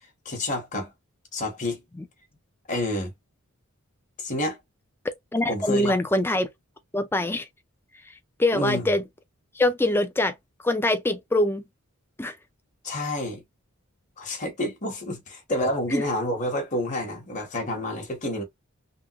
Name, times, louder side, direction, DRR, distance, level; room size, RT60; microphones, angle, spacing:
voice 1, 0.2-0.9 1.3-1.8 2.7-3.1 4.2-4.6 5.5-6.0 8.5-8.9 12.8-13.4 14.2-18.4, left 1 dB, 35° left, 1.2 m, -29 dB
voice 2, 5.3-6.5 6.9-7.5 8.4-9.0 9.6-10.3 10.6-11.6 12.2-12.3 15.9-16.0, left 1 dB, 10° left, 0.4 m, -23 dB
3.5 x 2.1 x 2.9 m
head